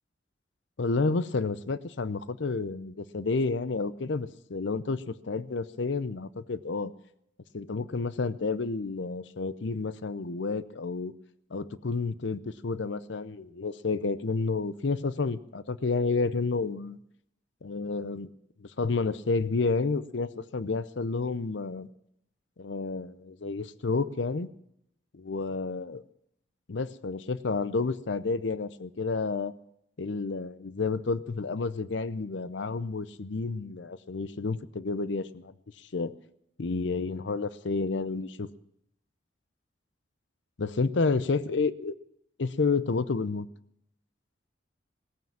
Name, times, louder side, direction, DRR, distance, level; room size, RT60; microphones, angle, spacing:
voice 1, 0.8-6.9 7.5-11.1 11.5-17.0 17.6-18.3 18.6-21.9 22.6-24.5 25.1-26.0 26.7-29.5 30.0-36.1 36.6-38.5 40.6-41.9 42.4-43.5, left 4 dB, 70° left, 17 dB, 0.6 m, -30 dB
17.5 x 9.3 x 7.3 m, 0.75 s
head